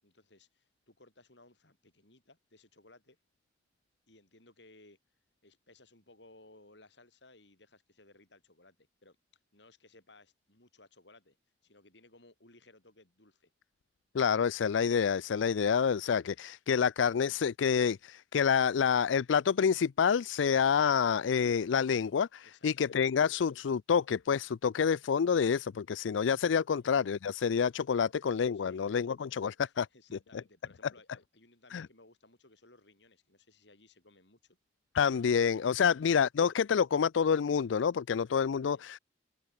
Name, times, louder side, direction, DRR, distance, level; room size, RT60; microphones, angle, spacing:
voice 1, 0.0-3.2 4.1-5.0 5.4-8.8 9.0-9.2 9.5-11.4 11.6-13.5 22.4-23.1 26.7-26.9 28.0-28.1 28.5-28.9 29.6-34.6 35.8-36.0 38.6-38.8, left 2 dB, 70° left, 7.2 m, -60 dB
voice 2, 14.1-29.9 31.7-31.9 34.9-39.0, left 6 dB, 90° left, 0.4 m, -28 dB
head